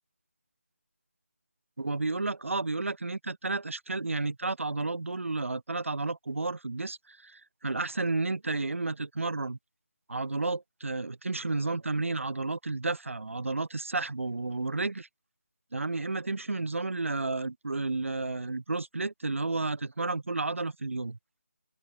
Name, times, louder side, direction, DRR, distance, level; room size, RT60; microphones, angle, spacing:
voice 1, 1.8-9.6 10.1-15.1 15.7-21.2, right 3 dB, 70° right, 2.3 m, -32 dB
open air
figure-of-eight pair, 165°, 7 cm